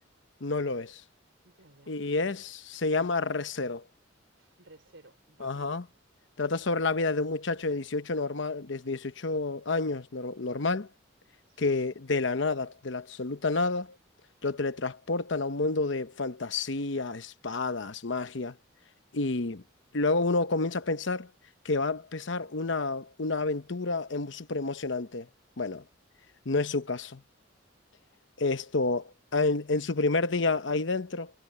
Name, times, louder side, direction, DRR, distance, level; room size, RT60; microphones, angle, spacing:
voice 1, 0.4-1.0 1.9-3.8 5.4-5.9 6.4-10.9 11.6-13.9 14.4-18.6 19.1-19.6 19.9-21.3 21.6-25.3 25.6-25.8 26.5-27.2 28.4-31.3, left 3 dB, 70° left, 0.9 m, -29 dB
voice 2, 1.4-1.9 4.4-5.8 11.5-11.9, right 2 dB, 75° right, 3.2 m, -56 dB
head